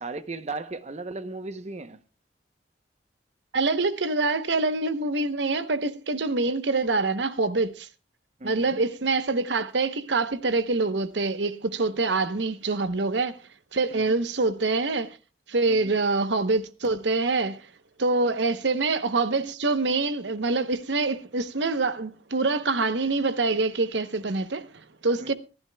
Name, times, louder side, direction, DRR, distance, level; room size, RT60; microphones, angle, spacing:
voice 1, 0.0-2.0 8.4-8.8 13.9-14.1 15.7-15.9 18.4-18.6 25.2-25.3, right 3 dB, 40° right, 0.8 m, -36 dB
voice 2, 3.5-7.9 8.4-13.4 13.7-15.2 15.5-17.7 18.0-25.3, right 3 dB, 80° right, 0.9 m, -25 dB
25.0 x 11.5 x 2.2 m
head